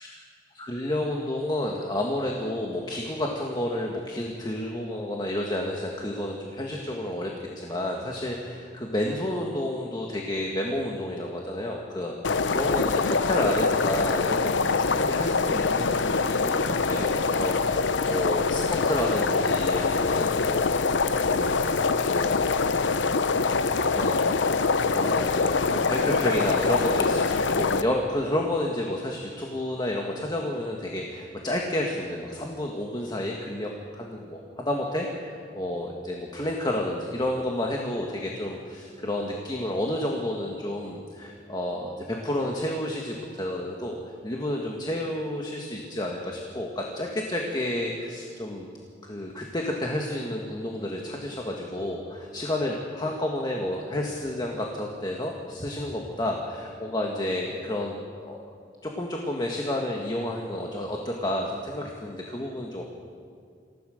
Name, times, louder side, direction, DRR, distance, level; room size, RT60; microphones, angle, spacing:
voice 1, 0.5-21.1 21.3-21.8 22.0-22.3 23.9-24.3 24.9-44.0 44.2-48.7 49.0-58.4 58.8-62.8, left 1 dB, 25° left, 0 dB, 1.8 m, -30 dB
sound 1, 12.2-27.8, left 4 dB, 85° left, 0.7 m, -24 dB
27.0 x 16.5 x 6.6 m, 2.2 s
head